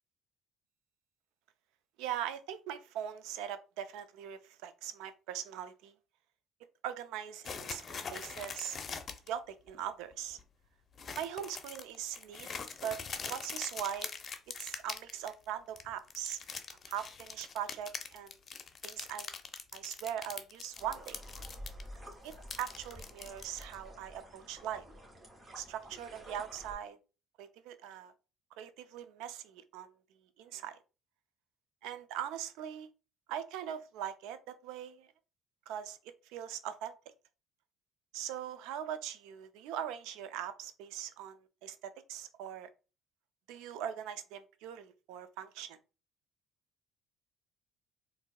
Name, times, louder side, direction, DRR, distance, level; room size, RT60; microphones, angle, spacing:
voice 1, 2.0-5.9 6.8-8.8 9.3-10.4 11.1-12.5 12.8-14.1 14.6-16.4 16.9-18.4 18.8-19.4 19.7-21.2 22.2-24.8 25.6-27.0 27.4-28.1 28.6-29.9 30.4-30.8 31.8-32.9 33.3-35.1 35.7-36.0 36.3-36.9 38.1-42.7 43.5-45.8, right 10 dB, 80° right, 0.4 m, -41 dB
sound 1, 7.4-9.3 9.7-9.8 10.1-10.4 11.0-15.5 15.8-21.8 22.1-23.7, left 5 dB, 45° left, 0.6 m, -43 dB
sound 2, 20.8-26.7, equal, 35° right, 1.7 m, -50 dB
4.4 x 2.7 x 2.3 m
supercardioid pair, 65°, 0 cm